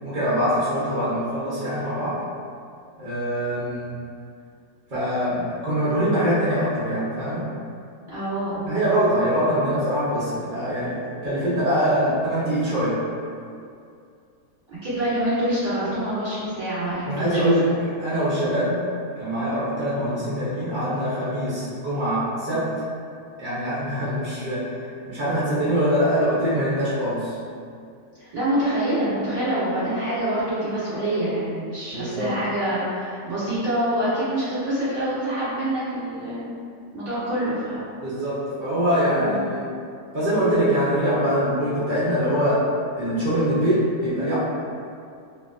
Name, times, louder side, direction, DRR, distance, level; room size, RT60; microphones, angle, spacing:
voice 1, 0.0-2.2 3.0-3.9 4.9-7.5 8.6-13.0 17.1-18.8 19.2-22.7 23.4-27.4 31.9-32.3 38.0-39.7 40.1-42.7 42.9-44.3, equal, 90° right, -11 dB, 0.4 m, -23 dB
voice 2, 8.1-8.6 14.7-17.7 28.2-36.5 36.9-37.8 39.2-39.4, right 1 dB, 25° right, -15 dB, 1.5 m, -26 dB
2.7 x 2.4 x 2.3 m, 2.4 s
omnidirectional pair, 1.8 m